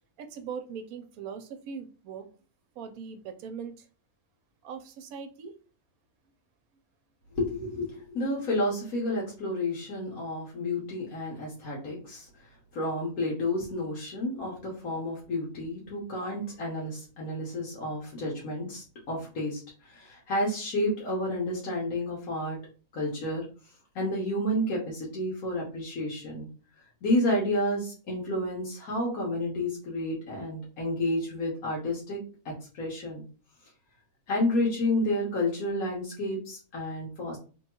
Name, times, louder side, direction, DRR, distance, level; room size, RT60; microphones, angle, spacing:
voice 1, 0.2-2.3 2.8-3.9 4.6-5.6, right 6 dB, 90° right, 9 dB, 1.1 m, -40 dB
voice 2, 7.3-12.3 12.7-22.6 22.9-23.4 23.9-26.5 27.0-33.2 34.3-37.4, left 1 dB, 85° left, -3 dB, 1.5 m, -30 dB
3.3 x 2.3 x 4.3 m, 0.37 s
omnidirectional pair, 1.5 m